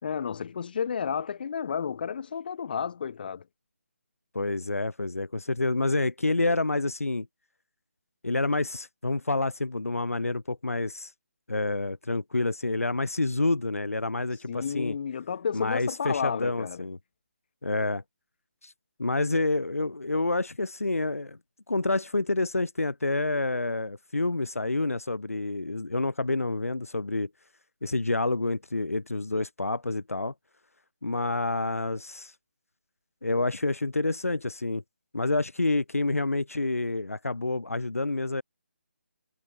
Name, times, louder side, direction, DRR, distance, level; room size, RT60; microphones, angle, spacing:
voice 1, 0.0-3.4 14.5-16.9, left 7 dB, 40° left, 1.9 m, -31 dB
voice 2, 4.3-7.3 8.2-11.1 11.5-15.0 15.5-17.0 17.6-18.0 18.6-18.7 19.0-21.4 21.7-27.3 27.8-30.3 31.0-32.3 33.2-34.8 35.1-38.4, left 2 dB, 85° left, 0.5 m, -28 dB
figure-of-eight pair, 150°, 8 cm